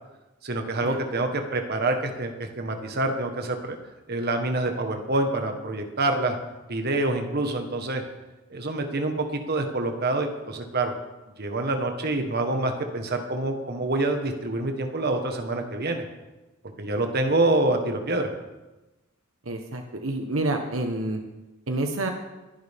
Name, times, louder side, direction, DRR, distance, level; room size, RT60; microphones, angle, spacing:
voice 1, 0.4-3.8 4.1-6.4 6.7-8.0 8.5-10.9 11.4-16.0 16.8-18.3, right 2 dB, 50° right, 4 dB, 1.5 m, -26 dB
voice 2, 19.4-21.2 21.7-22.1, right 2 dB, 70° right, 4 dB, 1.3 m, -28 dB
21.5 x 11.0 x 3.7 m, 1.1 s
head